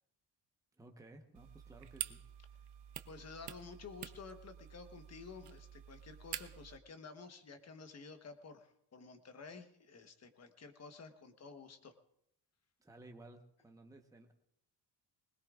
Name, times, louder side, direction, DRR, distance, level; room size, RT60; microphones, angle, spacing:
voice 1, 0.7-2.2 12.8-14.3, right 2 dB, 10° right, 3 dB, 1.1 m, -56 dB
sound 1, 1.3-6.8, right 12 dB, 75° right, 0.8 m, -48 dB
voice 2, 3.1-11.9, left 4 dB, 40° left, 8 dB, 1.2 m, -52 dB
21.0 x 20.5 x 2.5 m, 0.75 s
cardioid pair, 130°, 40 cm